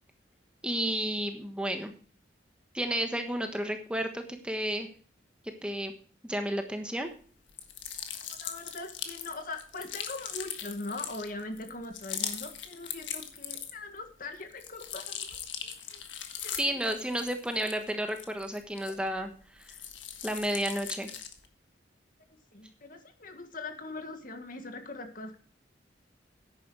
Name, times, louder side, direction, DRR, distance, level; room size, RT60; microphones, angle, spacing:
voice 1, 0.6-1.9 2.7-4.9 5.6-5.9 6.2-7.1 16.6-19.3 19.6-19.7 20.2-21.1, right 1 dB, 5° right, 5 dB, 1.2 m, -32 dB
sound 1, 7.5-14.0 14.3-19.2 19.6-21.5, left 9 dB, 90° left, 1.5 m, -40 dB
voice 2, 8.1-16.0 16.4-17.0 22.5-25.4, left 2 dB, 50° left, 7 dB, 1.8 m, -41 dB
11.0 x 9.3 x 4.7 m, 0.42 s
head